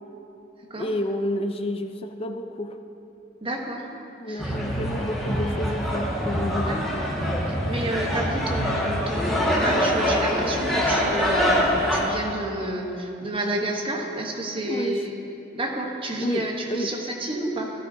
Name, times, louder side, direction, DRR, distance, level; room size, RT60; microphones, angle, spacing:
voice 1, 0.8-2.8 4.2-6.9 14.7-15.0 16.2-16.9, left 1 dB, 30° left, 6 dB, 0.5 m, -30 dB
voice 2, 3.4-3.9 4.3-4.6 6.7-6.8 7.5-15.2 15.5-17.7, right 1 dB, 30° right, 1 dB, 1.0 m, -30 dB
sound 1, 4.4-12.0, equal, ahead, 1.7 m, -24 dB
13.5 x 12.0 x 2.7 m, 2.9 s
head